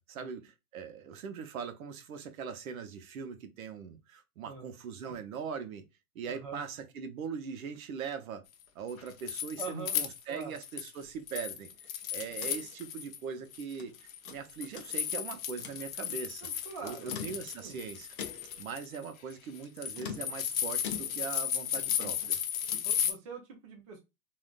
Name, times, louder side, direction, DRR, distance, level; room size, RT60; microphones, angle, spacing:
voice 1, 0.0-5.8 6.1-8.4 8.7-13.9 14.3-16.5 16.8-18.1 18.6-22.4, right 6 dB, 60° right, 0.7 m, -41 dB
voice 2, 6.3-6.6 9.6-10.0 10.3-10.6 16.4-17.1 17.6-17.8 22.8-24.0, right 5 dB, 25° right, 0.4 m, -43 dB
sound 1, 8.9-10.9 11.3-13.2 13.5-23.1, left 9 dB, 60° left, 0.7 m, -35 dB
sound 2, 11.7-13.9 14.2-15.2 15.5-15.9 16.9-17.7 18.2-18.7 19.9-21.5 21.7-23.0, left 7 dB, 35° left, 0.4 m, -45 dB
3.6 x 2.4 x 2.2 m
hypercardioid pair, 150°, 47 cm